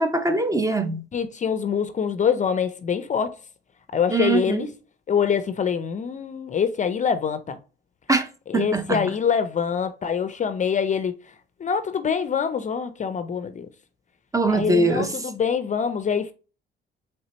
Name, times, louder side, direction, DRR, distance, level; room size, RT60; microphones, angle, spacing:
voice 1, 0.0-1.0 4.1-4.7 8.1-8.3 8.5-9.1 14.3-15.1, right 2 dB, 15° right, 0.7 m, -22 dB
voice 2, 1.1-3.3 3.9-4.7 5.1-7.6 8.5-11.1 11.6-13.7 14.5-16.3, left 7 dB, 40° left, 0.4 m, -25 dB
4.1 x 3.3 x 2.9 m
cardioid pair, 90°, 20 cm